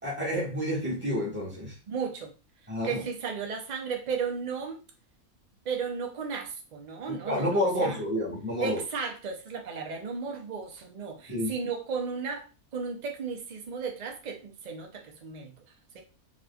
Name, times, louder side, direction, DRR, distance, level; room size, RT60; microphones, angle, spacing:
voice 1, 0.0-1.7 2.7-3.0 7.1-8.8 11.3-11.5, left 1 dB, 10° right, -6 dB, 1.4 m, -29 dB
voice 2, 1.9-2.3 2.8-4.8 5.6-8.0 8.6-12.5 12.7-15.5 15.9-16.0, right 5 dB, 60° right, 3 dB, 0.4 m, -34 dB
4.0 x 3.0 x 2.3 m, 0.33 s
omnidirectional pair, 1.6 m